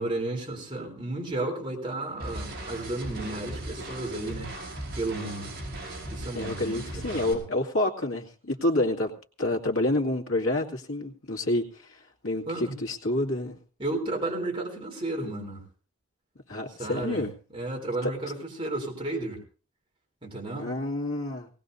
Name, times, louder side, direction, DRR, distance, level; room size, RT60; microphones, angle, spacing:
voice 1, 0.0-4.5 4.9-5.5 6.1-7.4 12.5-12.8 13.8-15.6 16.8-17.2 17.5-19.4 20.2-20.7, right 2 dB, 25° right, -1 dB, 3.6 m, -33 dB
sound 1, 2.2-7.3, right 1 dB, 45° right, 5.6 m, -38 dB
voice 2, 6.3-9.1 9.4-13.6 16.5-17.3 18.0-18.1 20.6-21.5, left 1 dB, 75° left, 1 dB, 2.2 m, -28 dB
19.0 x 18.5 x 2.7 m, 0.39 s
head